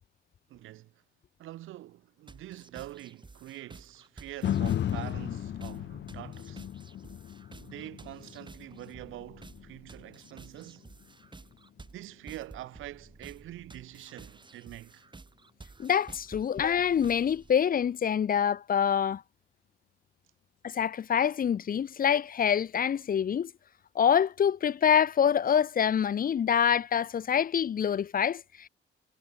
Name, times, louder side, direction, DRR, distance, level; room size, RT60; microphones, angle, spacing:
voice 1, 0.5-0.9 1.4-6.7 7.6-10.9 11.9-15.1, right 15 dB, 85° right, 6.3 m, -45 dB
sound 1, 2.3-17.5, right 3 dB, 25° right, 4.3 m, -52 dB
sound 2, 4.4-12.6 13.1-13.2, left 10 dB, 65° left, 1.4 m, -36 dB
voice 2, 15.8-19.2 20.6-23.5 23.9-28.7, left 8 dB, 45° left, 0.9 m, -26 dB
cardioid pair, 90°, 20 cm